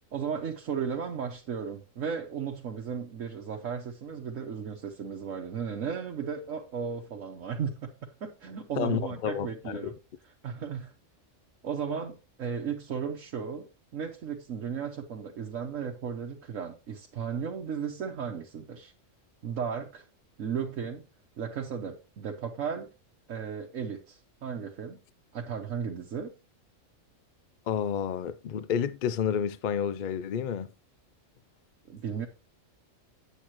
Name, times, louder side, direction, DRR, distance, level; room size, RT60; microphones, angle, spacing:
voice 1, 0.1-9.9 10.2-10.9 11.6-13.7 13.9-18.9 19.4-20.0 20.4-21.1 21.4-22.9 23.3-25.0 25.3-26.3 31.9-32.3, right 7 dB, 85° right, 1.5 m, -35 dB
voice 2, 8.8-9.8 27.7-30.7, left 8 dB, 65° left, 0.5 m, -30 dB
8.9 x 8.3 x 2.9 m
omnidirectional pair, 1.3 m